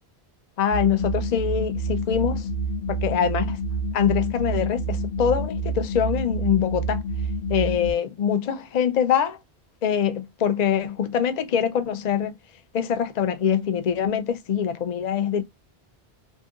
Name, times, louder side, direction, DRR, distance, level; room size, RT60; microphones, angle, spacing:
voice 1, 0.6-2.5 2.9-3.6 3.9-7.0 7.5-9.4 9.8-12.4 12.7-15.4, left 8 dB, 50° left, 0.6 m, -24 dB
sound 1, 0.7-7.9, right 2 dB, 85° left, 1.1 m, -28 dB
2.7 x 2.5 x 3.5 m
omnidirectional pair, 1.1 m